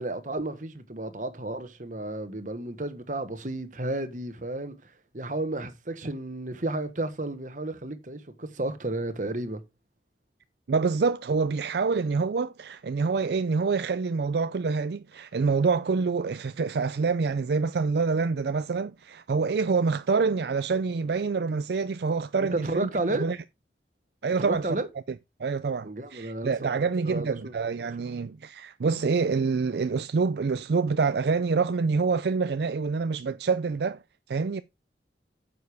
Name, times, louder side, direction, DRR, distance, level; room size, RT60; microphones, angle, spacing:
voice 1, 0.0-4.8 5.1-9.6 22.5-23.3 24.4-24.9 25.8-27.5, right 2 dB, 45° right, 1.3 m, -32 dB
voice 2, 10.7-23.4 24.2-24.8 25.4-34.0 34.3-34.6, right 4 dB, 65° right, 0.4 m, -26 dB
9.4 x 6.9 x 3.4 m
head